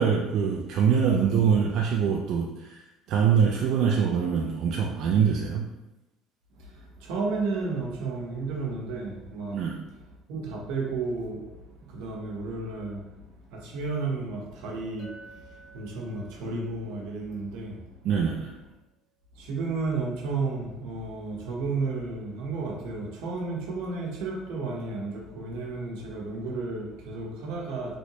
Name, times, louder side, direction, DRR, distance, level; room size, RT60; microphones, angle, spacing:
voice 1, 0.0-5.7 9.5-9.8 18.0-18.5, right 7 dB, 50° right, -1 dB, 0.3 m, -24 dB
voice 2, 6.6-9.6 10.3-11.5 11.8-13.0 13.5-15.1 15.5-17.7 19.3-27.9, right 3 dB, 80° right, -1 dB, 0.8 m, -32 dB
Chink clink, 15.0-19.2, right 4 dB, 45° left, 0.7 m, -54 dB
3.1 x 2.7 x 2.9 m, 1.0 s
cardioid pair, 165°, 0 cm